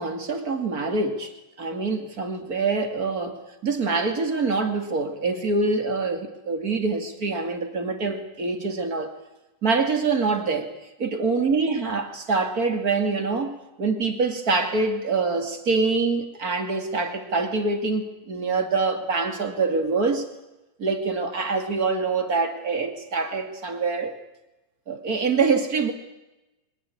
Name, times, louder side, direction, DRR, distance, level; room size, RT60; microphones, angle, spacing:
voice 1, 0.0-1.3 1.6-3.4 3.6-9.1 9.6-10.7 11.0-20.3 20.8-24.1 24.9-25.9, right 4 dB, 30° right, 6 dB, 2.3 m, -25 dB
23.5 x 20.5 x 8.5 m, 0.99 s
omnidirectional pair, 4.1 m